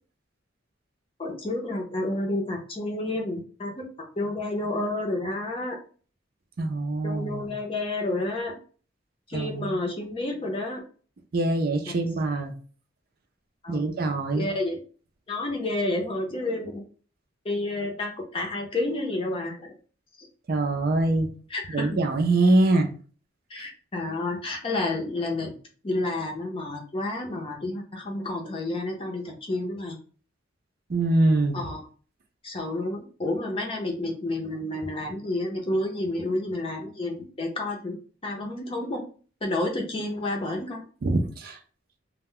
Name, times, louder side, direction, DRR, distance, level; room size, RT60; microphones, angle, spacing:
voice 1, 1.2-3.9 4.2-5.8 7.0-8.6 9.3-10.8 13.6-14.0 14.3-14.8 15.3-16.8 17.4-19.7 20.2-20.3 21.5-21.9 23.5-25.5 25.8-30.0 31.5-31.8 32.4-38.0 38.2-39.0 39.4-40.8, left 2 dB, 25° left, 1 dB, 0.6 m, -30 dB
voice 2, 6.6-7.5 9.3-9.8 11.3-12.5 13.7-14.5 20.5-21.3 21.7-22.9 23.6-23.7 30.9-31.6 41.0-41.6, right 2 dB, 50° right, 5 dB, 0.4 m, -24 dB
2.2 x 2.1 x 3.6 m, 0.40 s
head